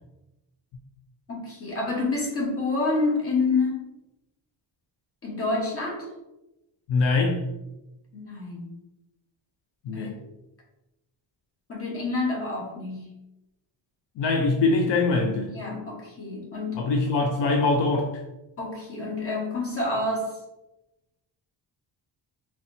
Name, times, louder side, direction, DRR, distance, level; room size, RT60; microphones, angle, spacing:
voice 1, 1.3-3.9 5.2-6.1 8.1-8.7 9.9-10.1 11.7-13.1 15.5-16.9 18.6-20.4, left 3 dB, 30° left, -2 dB, 1.2 m, -28 dB
voice 2, 6.9-7.5 9.8-10.2 14.2-15.5 16.7-18.2, left 3 dB, 70° left, 2 dB, 0.6 m, -23 dB
4.2 x 3.0 x 2.7 m, 0.94 s
cardioid pair, 140°, 43 cm